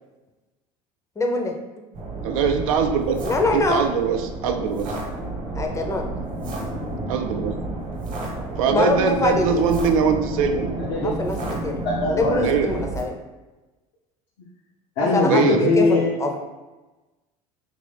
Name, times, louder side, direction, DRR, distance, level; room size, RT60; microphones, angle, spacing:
voice 1, 1.2-1.5 3.2-3.8 5.6-6.1 8.7-9.6 11.0-11.4 11.6-11.8 12.1-13.2 15.0-16.4, left 2 dB, 15° left, 2 dB, 0.5 m, -23 dB
sound 1, 1.9-13.0, right 2 dB, 45° right, 1.0 m, -31 dB
voice 2, 2.2-3.2 3.5-4.9 7.1-7.5 8.6-10.7 12.4-12.7 15.3-15.7, right 6 dB, 75° right, 5 dB, 0.4 m, -22 dB
voice 3, 10.8-11.1 11.8-12.6 15.0-16.1, left 3 dB, 70° left, -4 dB, 0.6 m, -21 dB
3.0 x 2.6 x 3.3 m, 1.1 s
hypercardioid pair, 70°, 18 cm